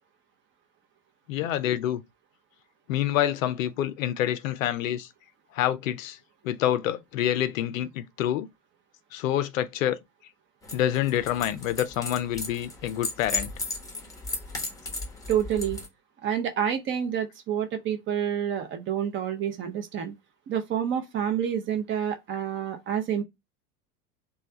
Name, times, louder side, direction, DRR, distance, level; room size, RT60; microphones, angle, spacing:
voice 1, 1.3-2.0 2.9-5.1 5.5-6.2 6.4-8.5 9.1-10.0 10.7-13.5, left 12 dB, 55° left, 0.5 m, -27 dB
sound 1, 10.6-15.9, left 3 dB, 5° left, 1.0 m, -36 dB
voice 2, 15.3-15.8 16.2-20.1 20.5-23.2, right 9 dB, 25° right, 0.6 m, -28 dB
3.1 x 2.3 x 3.9 m
figure-of-eight pair, 80°, 47 cm